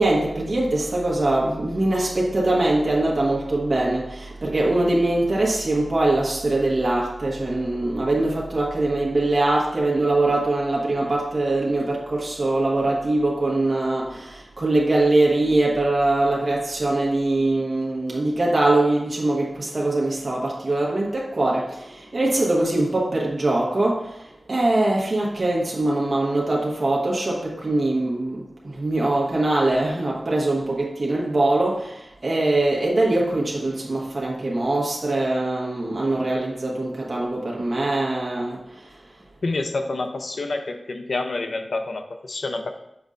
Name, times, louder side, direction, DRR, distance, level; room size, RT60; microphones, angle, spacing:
voice 1, 0.0-24.2 24.5-38.6, right 2 dB, 45° right, 1.2 m, -22 dB
voice 2, 39.4-42.7, left 2 dB, 75° left, 0.6 m, -28 dB
7.1 x 5.2 x 2.5 m
wide cardioid pair, 75°, 0 cm